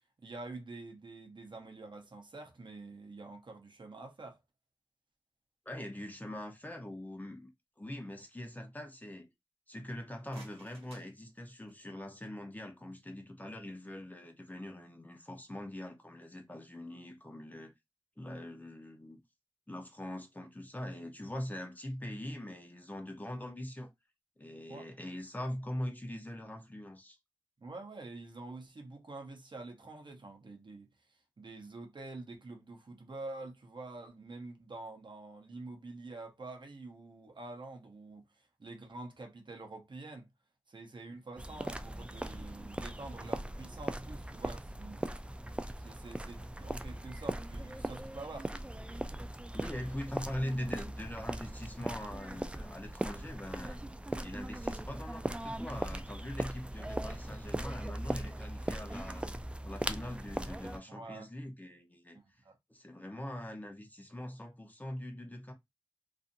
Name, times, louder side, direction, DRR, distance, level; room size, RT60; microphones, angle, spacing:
voice 1, 0.2-4.4 24.7-24.9 27.6-40.3 40.7-45.1 45.8-48.5 60.9-61.3 62.1-62.6, right 2 dB, 55° right, 0.8 m, -47 dB
voice 2, 5.7-7.5 7.8-9.3 9.7-17.7 18.2-19.2 19.7-23.9 24.4-27.2 49.5-53.8 54.2-59.3 59.6-62.2 62.7-65.5, left 1 dB, 15° left, 0.8 m, -42 dB
sound 1, 10.1-12.0, right 2 dB, 90° right, 1.2 m, -58 dB
sound 2, 41.4-60.8, right 1 dB, 10° right, 0.3 m, -39 dB
2.6 x 2.5 x 2.6 m
cardioid pair, 45°, 10 cm